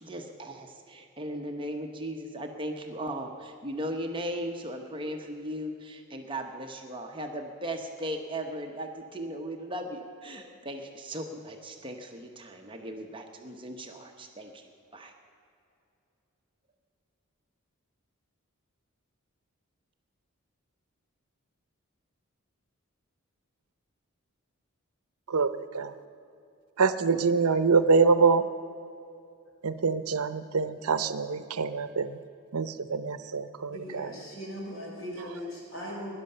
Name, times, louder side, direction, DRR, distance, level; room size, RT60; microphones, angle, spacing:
voice 1, 0.0-15.1, right 1 dB, 20° right, 4 dB, 0.9 m, -37 dB
voice 2, 25.3-25.9 26.8-28.4 29.6-32.2 32.5-34.1, right 4 dB, 85° right, 12 dB, 0.7 m, -25 dB
voice 3, 33.7-36.1, equal, 60° left, -2 dB, 4.8 m, -39 dB
16.5 x 11.0 x 6.7 m, 2.6 s
head